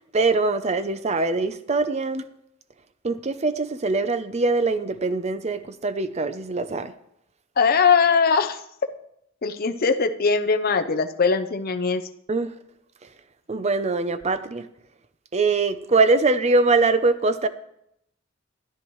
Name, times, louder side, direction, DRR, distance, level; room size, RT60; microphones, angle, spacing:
voice 1, 0.1-2.2 3.0-6.9 12.3-12.5 13.5-14.7 15.3-17.5, right 3 dB, 35° right, 0.6 m, -22 dB
voice 2, 7.6-8.6 9.4-12.0, left 5 dB, 50° left, 0.7 m, -20 dB
13.5 x 10.0 x 3.2 m
head